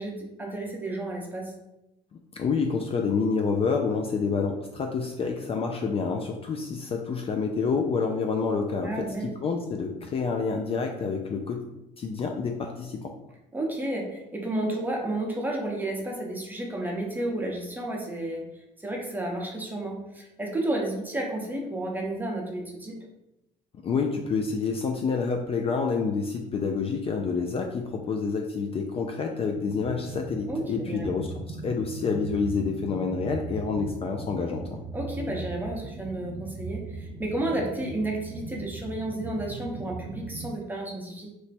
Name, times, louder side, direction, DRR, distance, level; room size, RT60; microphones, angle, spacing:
voice 1, 0.0-1.5 8.8-9.3 13.5-18.4 18.8-23.0 30.5-31.1 34.9-41.3, right 1 dB, 10° right, -1 dB, 0.8 m, -32 dB
voice 2, 2.3-11.6 12.0-13.1 23.8-34.8, left 5 dB, 35° left, 3 dB, 0.3 m, -28 dB
sound 1, 29.6-40.5, right 3 dB, 85° right, 0.5 m, -39 dB
3.1 x 2.1 x 4.1 m, 0.89 s
cardioid pair, 110°, 17 cm